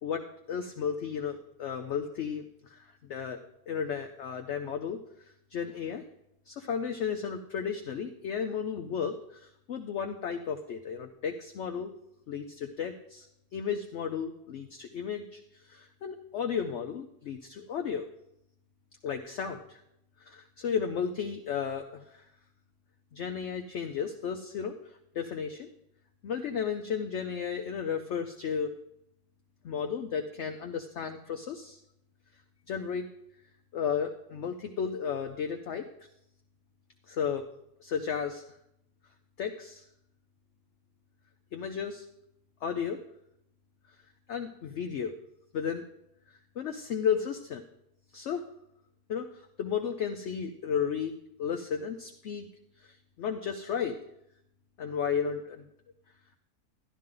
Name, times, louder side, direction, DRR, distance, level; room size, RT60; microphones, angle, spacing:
voice 1, 0.0-2.8 3.1-3.4 3.7-5.0 5.5-6.0 6.5-11.9 12.3-13.3 13.5-15.4 15.7-18.1 19.0-19.8 20.2-22.2 23.1-24.7 25.1-25.7 26.2-28.7 29.6-31.8 32.7-33.1 33.7-35.8 37.1-37.4 37.8-38.4 39.4-39.8 41.5-42.0 42.6-43.0 44.3-45.1 45.5-45.8 46.6-47.6 48.1-48.4 49.1-49.3 49.6-52.5 52.8-54.0 54.8-55.7, left 7 dB, 60° left, 4 dB, 0.8 m, -33 dB
12.5 x 11.0 x 3.8 m, 0.80 s
omnidirectional pair, 1.7 m